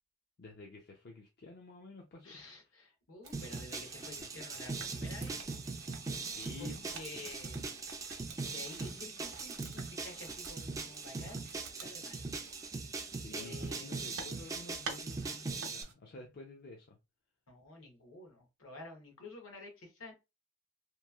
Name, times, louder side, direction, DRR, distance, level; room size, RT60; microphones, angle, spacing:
voice 1, 0.4-2.8 6.2-7.0 13.1-17.0, left 2 dB, 50° left, 0.5 m, -51 dB
voice 2, 2.2-5.4 6.6-7.6 8.5-11.5 11.7-12.3 13.3-14.1 17.5-20.1, left 2 dB, 65° left, 0.9 m, -50 dB
sound 1, 3.2-15.9, right 4 dB, 65° right, 0.7 m, -51 dB
sound 2, 3.3-15.8, right 3 dB, 15° right, 0.3 m, -41 dB
3.0 x 2.3 x 2.3 m
head